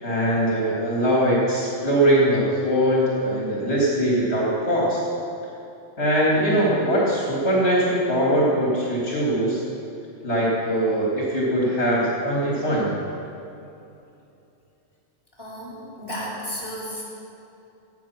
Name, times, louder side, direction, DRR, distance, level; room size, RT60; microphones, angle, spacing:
voice 1, 0.0-5.0 6.0-9.6 10.2-12.9, right 1 dB, 65° left, -5 dB, 2.8 m, -21 dB
voice 2, 15.4-17.0, equal, 20° left, -8 dB, 4.3 m, -33 dB
18.5 x 9.2 x 5.9 m, 2.8 s
omnidirectional pair, 1.2 m